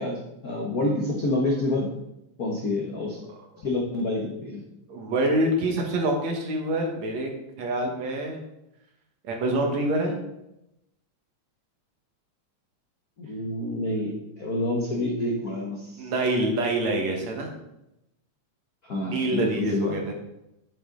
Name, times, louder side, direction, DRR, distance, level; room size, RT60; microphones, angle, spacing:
voice 1, 0.0-1.9 2.4-3.2 3.6-4.6 13.2-16.0 18.9-20.1, left 2 dB, 70° left, -1 dB, 0.8 m, -28 dB
voice 2, 4.9-7.3 7.6-8.4 9.2-10.2 16.0-17.5 19.0-20.1, right 1 dB, 65° right, 1 dB, 2.6 m, -26 dB
9.3 x 7.7 x 3.8 m, 0.85 s
omnidirectional pair, 3.4 m